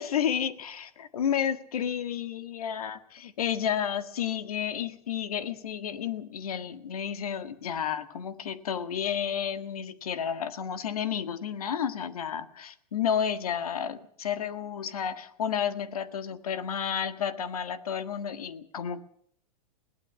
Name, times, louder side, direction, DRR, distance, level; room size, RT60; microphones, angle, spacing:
voice 1, 0.0-19.0, left 8 dB, 75° left, 11 dB, 1.8 m, -31 dB
21.5 x 18.0 x 7.0 m, 0.65 s
hypercardioid pair, 105°, 19 cm